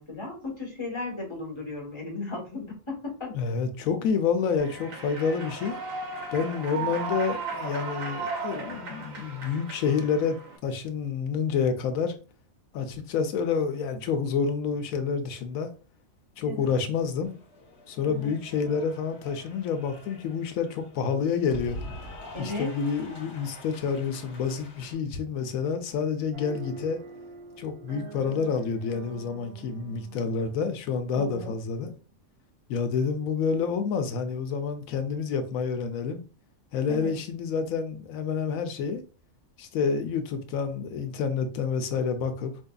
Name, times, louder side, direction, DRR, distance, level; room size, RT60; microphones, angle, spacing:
voice 1, 0.0-3.3 6.7-6.9 16.4-16.7 18.0-18.3 22.3-22.7 31.1-31.6 36.9-37.2, left 3 dB, 20° left, 1.2 m, -36 dB
voice 2, 3.3-5.8 6.3-12.1 12.7-15.7 16.4-17.4 17.9-21.8 22.4-27.0 27.6-31.9 32.7-36.2 36.7-39.0 39.6-42.6, left 6 dB, 90° left, 1.1 m, -28 dB
Human voice / Clapping / Cheering, 4.6-10.6, right 4 dB, 80° right, 1.2 m, -35 dB
Cheering / Applause, 17.2-24.9, left 1 dB, 55° left, 1.3 m, -45 dB
sound 1, 26.3-31.8, right 4 dB, 65° right, 0.7 m, -45 dB
4.3 x 2.6 x 2.3 m
omnidirectional pair, 1.4 m